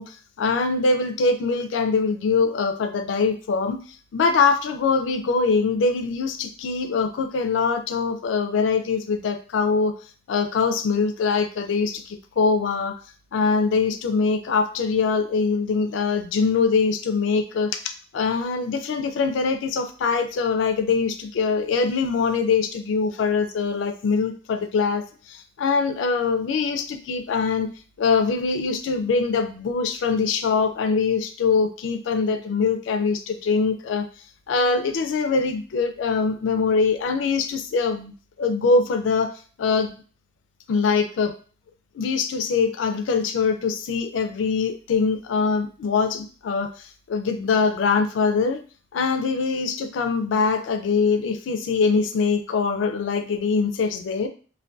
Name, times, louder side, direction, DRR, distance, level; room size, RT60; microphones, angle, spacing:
voice 1, 0.0-3.8 4.1-9.9 10.3-12.9 13.3-27.7 28.0-34.1 34.5-39.3 39.6-39.9 40.7-41.4 41.9-48.6 48.9-54.3, left 4 dB, 80° left, 7 dB, 0.3 m, -23 dB
2.5 x 2.2 x 2.2 m, 0.39 s
head